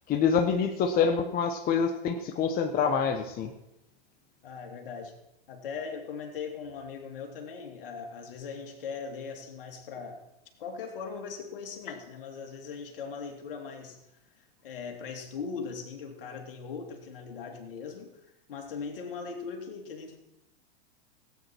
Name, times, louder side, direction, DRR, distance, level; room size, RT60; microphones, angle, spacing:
voice 1, 0.1-3.5, left 6 dB, 30° left, 6 dB, 1.1 m, -26 dB
voice 2, 4.4-5.1 5.5-10.2 10.6-14.0 14.6-18.2 18.5-20.2, left 5 dB, 65° left, 3 dB, 2.8 m, -39 dB
17.0 x 9.1 x 4.6 m, 0.88 s
hypercardioid pair, 100°, 29 cm